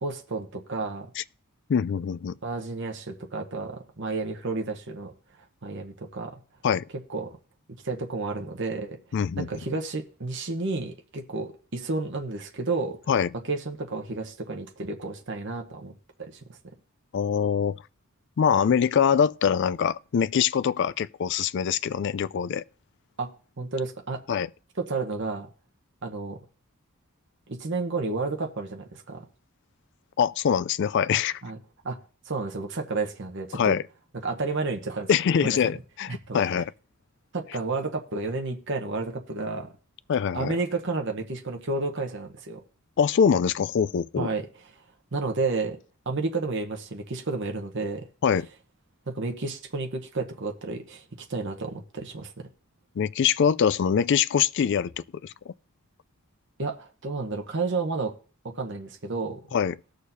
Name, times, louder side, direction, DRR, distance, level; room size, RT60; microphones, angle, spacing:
voice 1, 0.0-1.1 2.4-5.1 5.6-6.3 7.1-7.4 7.8-9.0 9.4-13.0 13.4-15.9 16.2-16.6 23.2-23.3 23.6-24.2 24.8-25.5 26.0-26.4 27.5-29.2 31.4-31.6 31.8-32.0 32.3-33.8 34.2-35.1 35.4-35.7 36.1-36.4 37.3-39.7 40.3-42.6 44.2-44.4 45.1-45.8 46.1-48.0 49.1-51.0 51.3-52.3 56.6-58.1 58.4-59.4, right 3 dB, 55° right, 1.0 m, -31 dB
voice 2, 1.7-2.4 6.6-6.8 9.1-9.5 13.1-13.3 17.1-17.8 18.4-22.6 24.3-24.5 30.2-31.4 33.5-33.8 35.1-36.7 40.1-40.5 43.0-44.3 48.2-48.5 53.0-55.5 59.5-59.8, left 7 dB, 55° left, 0.3 m, -24 dB
19.0 x 6.5 x 2.7 m
head